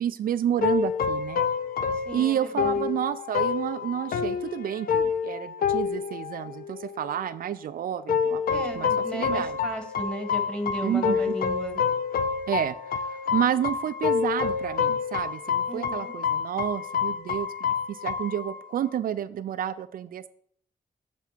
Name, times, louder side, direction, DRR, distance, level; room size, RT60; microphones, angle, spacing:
voice 1, 0.0-1.5 2.1-9.6 10.8-11.3 12.5-20.3, right 10 dB, 70° right, 12 dB, 0.4 m, -30 dB
sound 1, 0.6-7.2 8.1-18.9, left 6 dB, 75° left, 0.6 m, -28 dB
voice 2, 2.1-2.9 8.5-11.8 15.7-16.1, equal, 5° left, 4 dB, 1.8 m, -35 dB
8.1 x 3.5 x 6.0 m, 0.63 s
cardioid pair, 70°, 15 cm